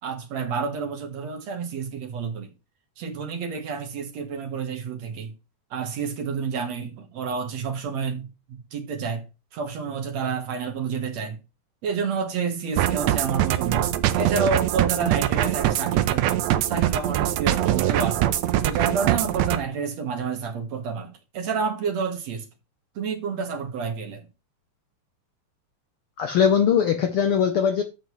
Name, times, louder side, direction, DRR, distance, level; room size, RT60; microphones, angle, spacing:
voice 1, 0.0-2.5 3.0-5.3 5.7-9.3 9.5-11.4 11.8-18.2 18.6-22.5 23.0-24.3, right 5 dB, 60° right, 2.6 m, -29 dB
sound 1, 12.8-19.6, right 13 dB, 80° right, 1.7 m, -23 dB
voice 2, 26.2-27.8, left 7 dB, 90° left, 1.2 m, -20 dB
10.5 x 7.8 x 3.1 m
omnidirectional pair, 3.6 m